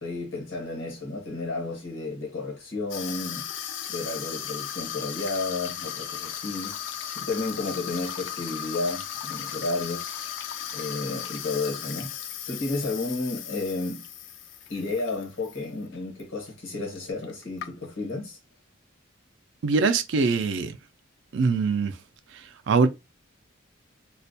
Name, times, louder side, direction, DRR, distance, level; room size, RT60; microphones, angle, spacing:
voice 1, 0.0-3.5 3.9-10.1 10.7-12.1 12.5-14.0 14.7-18.4, left 3 dB, 85° left, 1.1 m, -32 dB
Water tap faucet / Sink (filling or washing), 2.9-15.6 15.9-16.2 16.9-17.0 17.2-18.1, left 9 dB, 65° left, 0.3 m, -36 dB
voice 2, 19.6-20.7 21.3-21.9 22.7-22.9, right 4 dB, 65° right, 0.4 m, -22 dB
2.3 x 2.1 x 2.6 m
head